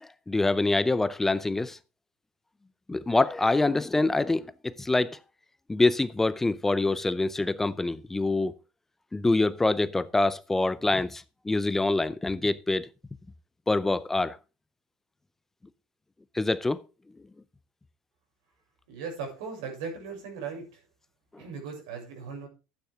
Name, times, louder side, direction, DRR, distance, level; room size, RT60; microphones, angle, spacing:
voice 1, 0.0-1.8 2.9-5.2 5.7-8.5 9.1-12.9 13.7-14.4 16.3-16.8, left 2 dB, 10° left, 0.5 m, -25 dB
voice 2, 18.9-20.8 21.4-22.5, right 5 dB, 85° right, 6.8 m, -38 dB
12.0 x 9.1 x 3.6 m
supercardioid pair, 130°, 3 cm